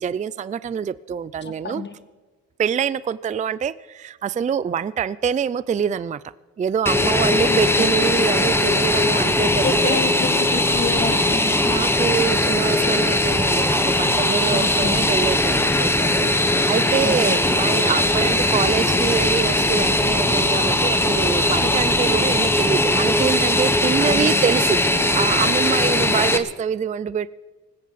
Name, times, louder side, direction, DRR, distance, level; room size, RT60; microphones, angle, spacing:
voice 1, 0.0-1.8 2.6-6.2 6.6-10.0 11.6-16.3 16.7-27.3, right 7 dB, 25° right, 18 dB, 0.4 m, -25 dB
voice 2, 1.4-1.9 7.4-8.1 9.6-11.5 14.5-15.1 17.0-17.6 24.0-24.4, left 4 dB, 35° left, 8 dB, 1.9 m, -29 dB
Fixed-wing aircraft airplane, 6.9-26.4, left 1 dB, 10° left, 1.2 m, -19 dB
19.0 x 16.5 x 4.1 m, 1.3 s
cardioid pair, 90°, 30 cm